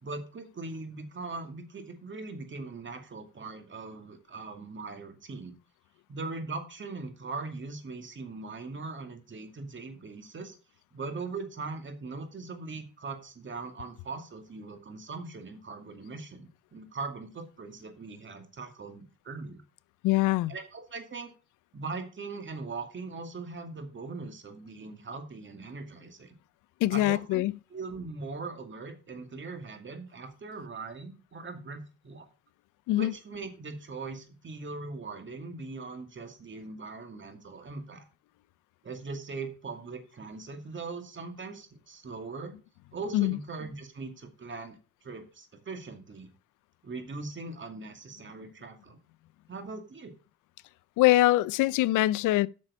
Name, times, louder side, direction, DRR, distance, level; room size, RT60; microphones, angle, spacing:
voice 1, 0.0-5.5 6.1-10.5 10.9-19.6 20.5-21.3 21.7-26.3 26.9-27.4 27.7-32.3 32.9-38.0 38.8-42.5 42.9-44.8 45.0-46.3 46.8-49.0 49.5-50.1, right 3 dB, 40° right, 2.4 m, -40 dB
voice 2, 20.0-20.5 26.8-27.6 32.9-33.1 43.1-43.4 51.0-52.5, left 16 dB, 85° left, 0.5 m, -23 dB
8.5 x 6.3 x 6.2 m
cardioid pair, 90°, 30 cm